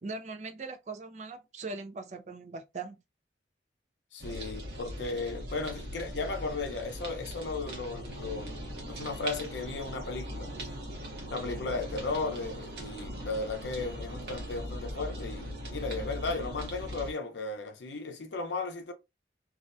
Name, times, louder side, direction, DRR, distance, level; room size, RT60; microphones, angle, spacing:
voice 1, 0.0-3.0, right 3 dB, 40° right, 0.4 m, -40 dB
voice 2, 4.1-8.6 8.9-10.8 11.3-18.9, left 3 dB, 80° left, 0.6 m, -35 dB
sound 1, 4.2-17.1, equal, 65° right, 0.9 m, -40 dB
2.4 x 2.1 x 2.5 m
head